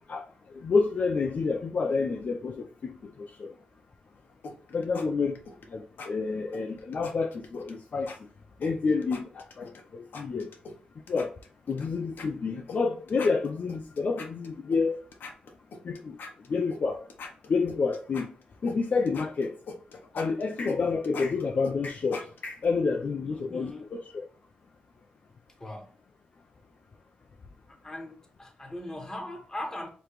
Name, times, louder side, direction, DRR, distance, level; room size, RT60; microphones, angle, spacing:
voice 1, 0.5-3.1 3.4-3.5 4.7-5.4 5.7-8.1 8.6-10.5 11.1-11.3 11.7-15.0 15.8-16.2 16.5-17.0 17.5-18.3 18.6-19.5 20.1-24.3, left 4 dB, 55° left, 0.5 m, -29 dB
sound 1, 4.4-5.1 5.4-5.7 6.0-6.1 6.5-7.7 8.1-8.2 8.6-9.8 10.1-10.8 11.1-11.9 12.2-12.3 12.7-12.8 13.1-14.8 15.1-16.8 17.1-18.8 19.1-22.7, left 4 dB, 80° left, 0.8 m, -42 dB
voice 2, 23.2-23.9 25.6-25.9 27.7-29.9, left 1 dB, 15° left, 1.3 m, -39 dB
5.0 x 3.0 x 3.0 m
cardioid pair, 85°, 3 cm